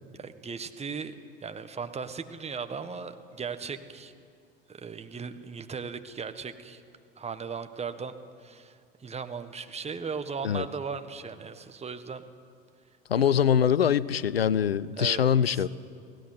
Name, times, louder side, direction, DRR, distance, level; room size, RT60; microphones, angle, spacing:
voice 1, 0.2-1.1 1.4-4.1 4.7-6.8 7.2-8.1 8.4-8.7 9.0-12.2 13.2-13.3 15.0-15.6, right 5 dB, 20° right, 9 dB, 1.6 m, -37 dB
voice 2, 13.1-15.7, left 8 dB, 85° left, 21 dB, 0.6 m, -23 dB
28.0 x 17.0 x 8.0 m, 2.3 s
figure-of-eight pair, 70°, 29 cm